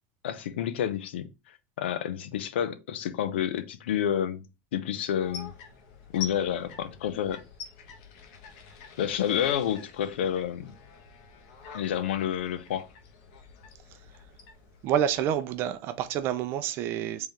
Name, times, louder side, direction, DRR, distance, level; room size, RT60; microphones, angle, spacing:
voice 1, 0.2-4.4 4.7-5.5 6.1-7.4 9.0-10.7 11.7-12.9, left 10 dB, 85° left, 0.7 m, -29 dB
sound 1, 5.2-16.0, left 6 dB, 55° left, 1.2 m, -46 dB
voice 2, 14.8-17.3, right 10 dB, 45° right, 0.5 m, -28 dB
3.7 x 3.4 x 4.2 m
supercardioid pair, 135°, 6 cm